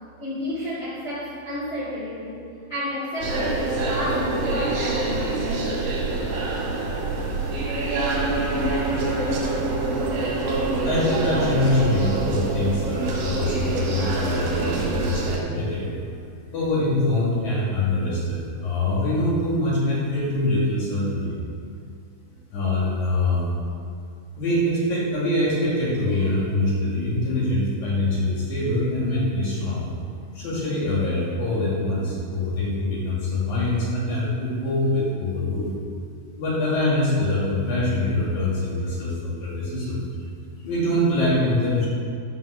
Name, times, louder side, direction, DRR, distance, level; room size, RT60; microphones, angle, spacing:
voice 1, 0.2-6.1, left 1 dB, 30° left, -10 dB, 2.6 m, -31 dB
sound 1, 3.2-15.4, right 2 dB, 60° right, 3.6 m, -25 dB
voice 2, 10.8-15.9 16.5-21.4 22.5-23.5 24.4-29.9 30.3-35.7 36.4-40.0 40.6-41.9, left 1 dB, 50° left, -6 dB, 2.8 m, -24 dB
12.0 x 5.4 x 6.7 m, 2.3 s
omnidirectional pair, 5.9 m